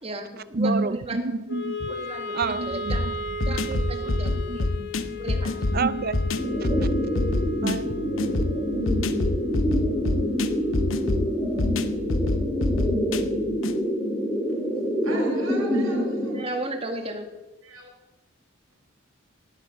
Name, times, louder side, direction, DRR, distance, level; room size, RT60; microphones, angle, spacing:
voice 1, 0.0-1.2 1.9-3.1 3.5-4.7 5.2-5.5 7.1-7.3 16.3-17.3, right 2 dB, 30° right, 5 dB, 1.7 m, -34 dB
voice 2, 0.5-1.9 2.3-3.1 3.4-3.6 4.2-5.2 5.7-6.2 6.6-6.7 7.6-8.4, right 3 dB, 45° right, 16 dB, 0.5 m, -29 dB
Wind instrument woodwind instrument, 1.5-13.7, left 2 dB, 50° left, 1.4 m, -36 dB
sound 1, 2.9-13.8, left 2 dB, 70° left, 0.8 m, -27 dB
sound 2, 6.4-16.4, equal, ahead, 2.9 m, -26 dB
voice 3, 15.0-16.4 17.6-17.9, right 1 dB, 80° right, 2 dB, 4.4 m, -39 dB
18.0 x 8.2 x 6.4 m, 1.0 s
head